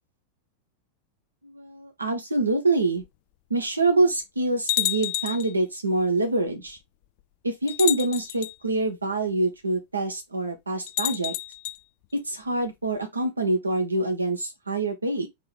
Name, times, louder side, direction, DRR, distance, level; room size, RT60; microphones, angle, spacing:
voice 1, 1.4-3.0 3.5-6.8 7.4-11.3 12.2-15.3, right 2 dB, 80° right, 1.4 m, -25 dB
sound 1, 3.0-3.1 3.9-4.0 4.7-5.5 6.7-6.8 7.7-8.5 10.9-11.8, left 16 dB, 50° left, 0.3 m, -29 dB
4.5 x 3.2 x 3.5 m
figure-of-eight pair, 90°, 0 cm